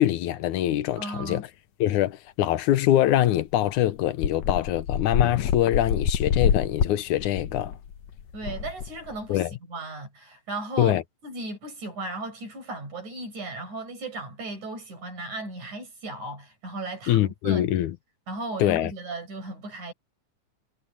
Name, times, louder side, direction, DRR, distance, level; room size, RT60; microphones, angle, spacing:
voice 1, 0.0-1.5 1.8-7.7 9.3-9.5 10.8-11.0 17.1-18.0 18.6-18.9, left 13 dB, 85° left, 2.4 m, -24 dB
voice 2, 1.0-1.4 8.3-11.0 11.2-17.7 18.3-19.9, right 2 dB, 85° right, 9.2 m, -36 dB
sound 1, 3.2-3.3 3.6-3.7 4.2-9.4, left 8 dB, 70° left, 2.4 m, -27 dB
omnidirectional pair, 3.3 m